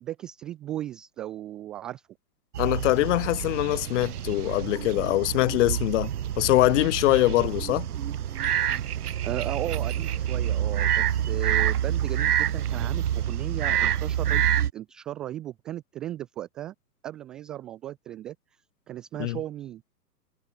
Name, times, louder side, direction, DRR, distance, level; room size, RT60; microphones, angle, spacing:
voice 1, 0.0-2.0 9.2-14.4 14.7-16.7 17.0-18.4 18.9-19.8, right 13 dB, ahead, 0.3 m, -36 dB
Day Time Sounds in Malaysian Jungle, 2.5-14.7, right 10 dB, 65° right, 5.7 m, -27 dB
voice 2, 2.6-6.1 6.4-7.9 19.2-19.4, left 18 dB, 45° left, 4.7 m, -23 dB
hypercardioid pair, 130°, 49 cm